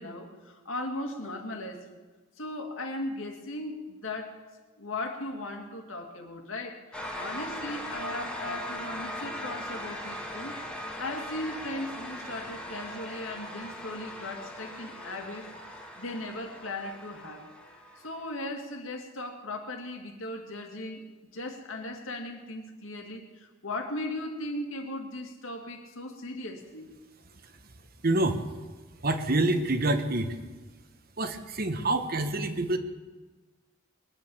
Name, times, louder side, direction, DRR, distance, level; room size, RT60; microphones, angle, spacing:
voice 1, 0.0-1.9 2.4-4.4 4.8-15.5 16.0-17.5 18.0-21.0 21.3-26.9, left 1 dB, 80° left, 3 dB, 2.2 m, -37 dB
sound 1, 6.9-18.4, left 1 dB, 5° left, 1.7 m, -40 dB
voice 2, 28.0-28.4 29.0-30.4 31.2-32.8, right 2 dB, 45° right, 8 dB, 1.1 m, -26 dB
21.5 x 8.8 x 7.1 m, 1.3 s
head